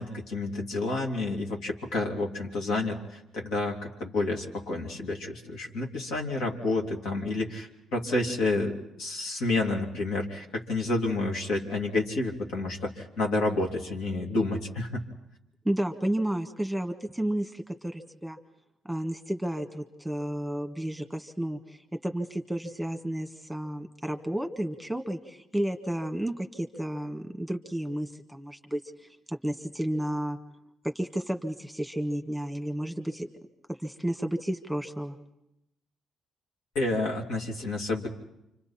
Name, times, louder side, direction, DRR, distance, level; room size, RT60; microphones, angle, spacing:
voice 1, 0.0-15.0 36.7-38.1, left 2 dB, 80° left, 0 dB, 2.9 m, -29 dB
voice 2, 15.6-18.4 18.8-30.4 30.8-33.3 33.7-35.2, right 1 dB, ahead, 5 dB, 1.7 m, -32 dB
29.0 x 26.0 x 4.4 m, 0.86 s
cardioid pair, 90°, 0 cm